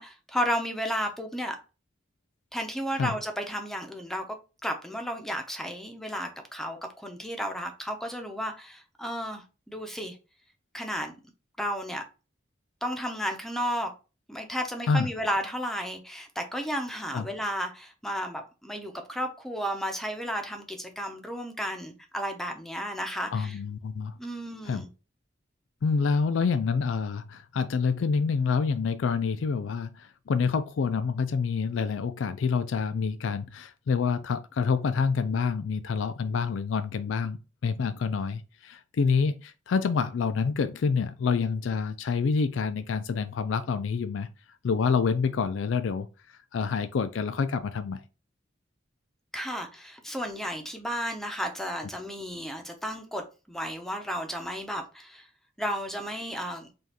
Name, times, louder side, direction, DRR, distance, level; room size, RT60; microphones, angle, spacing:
voice 1, 0.0-1.6 2.5-10.2 10.7-11.2 11.6-12.0 12.8-13.9 14.3-23.6 24.2-24.9 49.3-55.3 55.6-56.7, equal, ahead, 0.6 m, -33 dB
voice 2, 23.3-24.2 24.7-24.9 25.8-44.3 44.6-46.1 46.5-48.0 51.8-51.9, left 5 dB, 85° left, 0.4 m, -27 dB
5.0 x 2.4 x 2.9 m
head